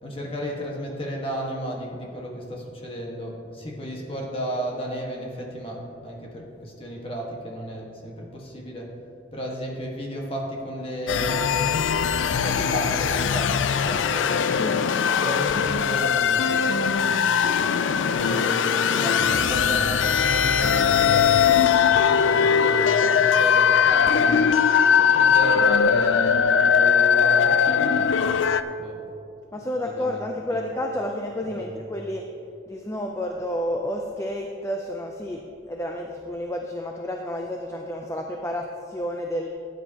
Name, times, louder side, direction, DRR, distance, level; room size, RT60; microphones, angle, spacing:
voice 1, 0.0-8.9 9.3-11.7 12.4-14.6 15.2-17.4 18.0-21.3 21.8-24.4 25.0-28.4 28.8-29.0 29.8-30.6 31.5-31.8, equal, 30° left, -1 dB, 1.5 m, -33 dB
sound 1, 11.1-28.6, left 7 dB, 85° left, 0.4 m, -20 dB
voice 2, 14.6-15.4 29.5-32.2 32.7-39.5, left 1 dB, 15° left, 2 dB, 0.5 m, -30 dB
14.0 x 9.3 x 2.9 m, 2.6 s
head